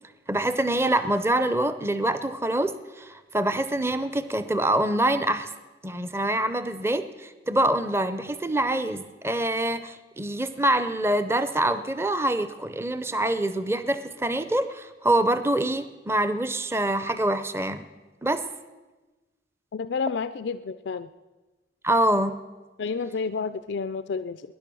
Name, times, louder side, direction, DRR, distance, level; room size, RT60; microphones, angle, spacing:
voice 1, 0.3-5.5 5.8-17.8 18.2-18.5 21.8-22.4, right 1 dB, 15° right, 12 dB, 0.5 m, -25 dB
voice 2, 19.7-21.1 22.8-24.4, left 5 dB, 85° left, 12 dB, 0.4 m, -30 dB
19.5 x 10.5 x 6.2 m, 1.2 s
head